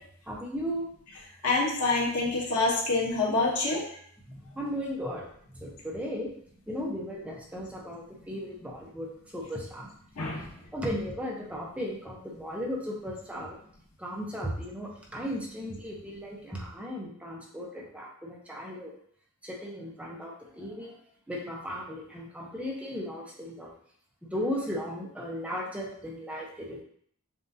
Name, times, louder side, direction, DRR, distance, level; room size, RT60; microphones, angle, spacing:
voice 1, 0.3-0.9 4.3-5.2 5.5-6.3 6.7-9.9 10.4-10.5 10.7-13.6 14.0-18.9 19.4-20.9 21.3-23.7 24.2-26.8, equal, 5° right, -2 dB, 0.7 m, -36 dB
voice 2, 1.4-3.8 10.2-10.5, left 3 dB, 85° left, -3 dB, 1.1 m, -26 dB
7.0 x 2.5 x 2.7 m, 0.63 s
head